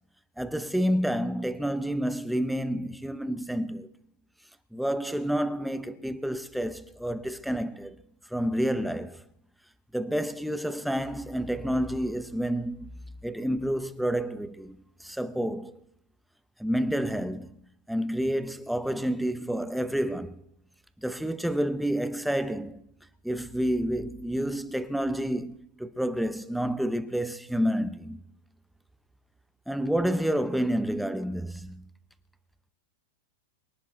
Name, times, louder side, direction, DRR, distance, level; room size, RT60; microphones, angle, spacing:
voice 1, 0.4-3.9 4.7-8.0 8.3-9.2 9.9-12.9 13.2-15.8 16.6-17.5 17.9-20.4 21.0-22.8 23.2-28.2 29.7-31.9, equal, ahead, 0.8 m, -29 dB
23.5 x 11.0 x 3.9 m
supercardioid pair, 145°, 0 cm